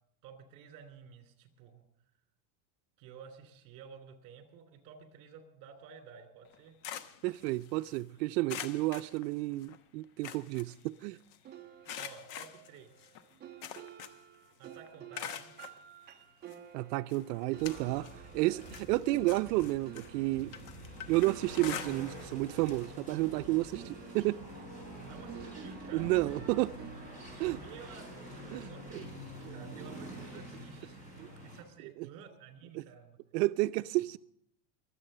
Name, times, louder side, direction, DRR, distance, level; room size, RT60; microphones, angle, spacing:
voice 1, 0.2-1.8 3.0-6.8 12.0-13.2 14.6-15.5 24.9-26.1 27.4-33.2, right 6 dB, 45° right, 2.9 m, -52 dB
sound 1, 6.5-8.0 8.5-9.8 10.0-11.4 11.9-14.4 14.6-15.8 16.5-16.6 17.1-18.2 18.5-22.3 22.6-22.8 23.2-23.3 24.5-24.6, left 9 dB, 55° left, 1.1 m, -45 dB
voice 2, 7.2-11.2 16.7-18.1 18.3-20.5 21.1-24.4 25.9-26.7 27.4-27.6 28.5-28.7 31.2-31.3 32.8-32.9 33.3-34.2, right 19 dB, 85° right, 0.6 m, -31 dB
sound 2, 11.4-23.4 23.7-28.9, right 10 dB, 20° right, 0.9 m, -53 dB
sound 3, 17.5-31.6, equal, 15° left, 5.6 m, -47 dB
22.5 x 8.2 x 6.6 m
supercardioid pair, 165°, 48 cm